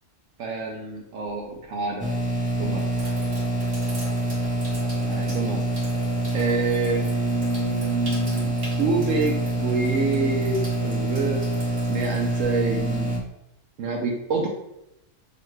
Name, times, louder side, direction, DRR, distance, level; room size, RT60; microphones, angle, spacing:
voice 1, 0.4-2.2 2.6-2.9 5.0-5.7 6.3-11.4 11.9-13.1 13.8-14.5, right 4 dB, 75° right, 1 dB, 0.9 m, -27 dB
Sink (filling or washing), 1.5-1.7 2.3-13.3, equal, 50° right, 1.3 m, -40 dB
sound 1, 2.0-13.2, right 1 dB, 10° right, 0.5 m, -26 dB
6.2 x 2.2 x 3.1 m, 0.86 s
omnidirectional pair, 1.4 m